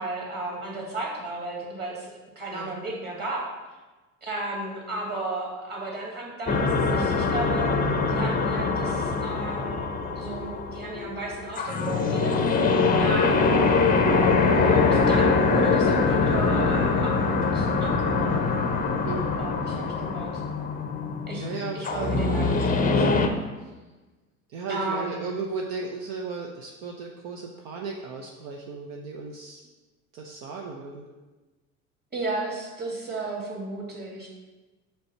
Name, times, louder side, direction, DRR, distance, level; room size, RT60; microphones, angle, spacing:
voice 1, 0.0-3.5 4.2-7.7 8.1-12.7 13.0-13.7 14.5-18.5 19.4-20.4 21.3-21.5 21.7-23.4 24.7-25.3 32.1-34.3, right 2 dB, 25° right, -2 dB, 2.0 m, -34 dB
sound 1, 6.5-23.3, left 4 dB, 20° left, 0.6 m, -23 dB
voice 2, 19.1-19.4 19.7-20.0 21.4-22.2 23.6-23.7 24.5-29.6 30.1-31.1, right 4 dB, 60° right, 0 dB, 0.8 m, -35 dB
5.2 x 3.5 x 5.5 m, 1.2 s
hypercardioid pair, 70°, 42 cm